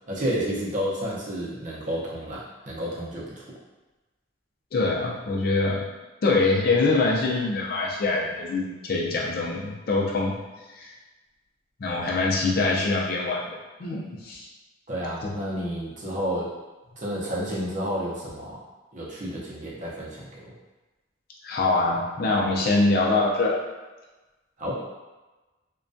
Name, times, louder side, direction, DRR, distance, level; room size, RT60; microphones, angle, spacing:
voice 1, 0.1-3.4 14.9-16.5 17.0-18.6 18.9-20.5 24.6-24.8, equal, 40° right, -5 dB, 0.6 m, -30 dB
voice 2, 4.7-5.9 6.2-10.4 10.8-10.9 11.8-14.5 15.2-15.3 21.4-23.6, left 3 dB, 50° left, -3 dB, 0.4 m, -24 dB
2.2 x 2.2 x 2.5 m, 1.1 s
head